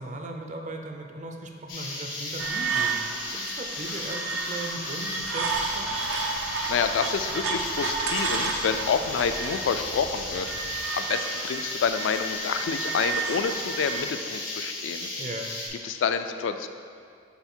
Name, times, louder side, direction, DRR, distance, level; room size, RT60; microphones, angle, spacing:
voice 1, 0.0-3.0 3.3-6.0 15.2-15.5, right 2 dB, 40° right, 3 dB, 0.5 m, -38 dB
sound 1, 1.7-15.7, left 2 dB, 90° left, 1.1 m, -35 dB
sound 2, 2.4-14.0, right 4 dB, 85° right, 0.6 m, -32 dB
sound 3, 5.2-10.8, left 1 dB, 65° right, 1.0 m, -47 dB
voice 2, 6.3-15.1 15.8-16.7, left 6 dB, 70° left, 9 dB, 0.3 m, -28 dB
5.7 x 3.9 x 4.4 m, 2.2 s
head